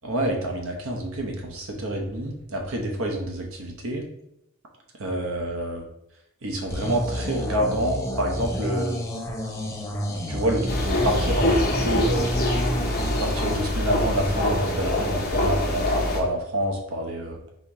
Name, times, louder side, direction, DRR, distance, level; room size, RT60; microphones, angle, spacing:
voice 1, 0.0-4.1 5.0-5.8 6.4-9.0 10.3-12.3 13.2-17.4, right 1 dB, 85° right, 2 dB, 0.9 m, -27 dB
sound 1, 6.7-13.6, left 1 dB, 15° left, 0.6 m, -30 dB
sound 2, 10.7-16.2, left 1 dB, 45° left, 0.9 m, -24 dB
4.2 x 3.9 x 3.0 m, 0.79 s
head